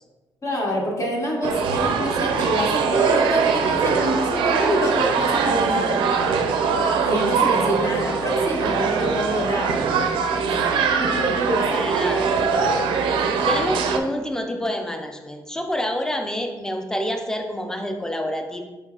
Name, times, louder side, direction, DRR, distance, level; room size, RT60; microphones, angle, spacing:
voice 1, 0.4-6.1 7.0-9.8 10.5-10.7 11.0-11.8, equal, 40° left, -2 dB, 1.3 m, -26 dB
sound 1, 1.4-14.0, right 5 dB, 90° right, 0.4 m, -22 dB
voice 2, 11.7-12.7 13.4-18.6, equal, 5° left, 4 dB, 0.6 m, -27 dB
4.8 x 4.4 x 2.3 m, 1.2 s
cardioid pair, 65°, 8 cm